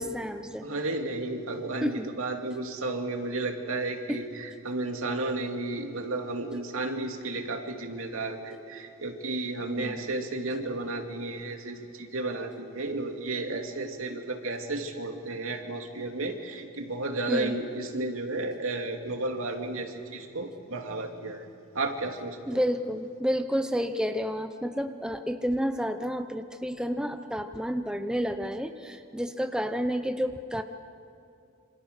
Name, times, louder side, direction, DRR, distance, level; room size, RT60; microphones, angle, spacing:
voice 1, 0.0-0.7 1.8-2.1 4.1-4.2 9.8-10.0 17.3-17.6 22.5-30.6, equal, 5° right, 7 dB, 0.8 m, -30 dB
voice 2, 0.6-21.5 21.7-22.6, right 2 dB, 80° right, 3 dB, 2.6 m, -33 dB
27.5 x 26.5 x 6.7 m, 2.6 s
head